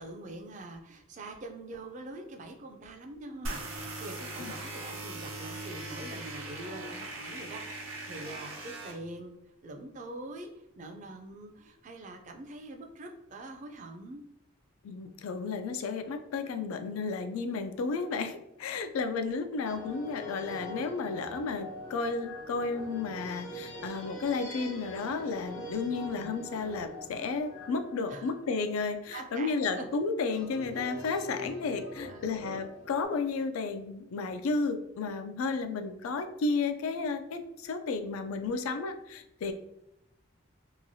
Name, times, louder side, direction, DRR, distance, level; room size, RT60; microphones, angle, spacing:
voice 1, 0.0-9.3 9.6-10.5 10.8-14.2 25.9-26.3 28.1-28.3 29.1-29.8 32.1-32.6, right 2 dB, 35° right, 4 dB, 0.3 m, -44 dB
sound 1, 3.4-8.9, right 2 dB, 75° right, 0.7 m, -40 dB
voice 2, 14.8-39.5, left 4 dB, 90° left, 8 dB, 0.3 m, -33 dB
sound 2, 17.8-18.3 19.7-29.3 30.3-33.0, left 1 dB, 70° left, 0.8 m, -44 dB
2.9 x 2.3 x 2.6 m, 0.81 s
head